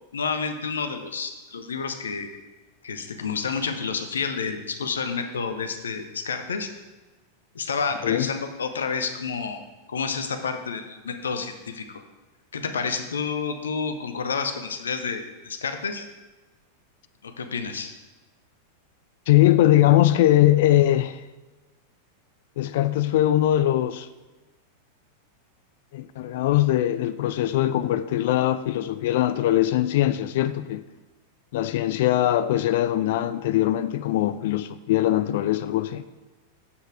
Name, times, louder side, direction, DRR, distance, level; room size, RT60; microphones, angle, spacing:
voice 1, 0.1-2.3 2.8-6.7 7.5-9.6 9.9-12.0 12.5-16.1 17.2-17.9, left 5 dB, 70° left, 0.7 m, -29 dB
voice 2, 19.3-21.2 22.6-24.1 25.9-30.8 31.5-36.0, left 13 dB, 55° left, 0.3 m, -21 dB
7.2 x 6.5 x 4.7 m
figure-of-eight pair, 90°, 0 cm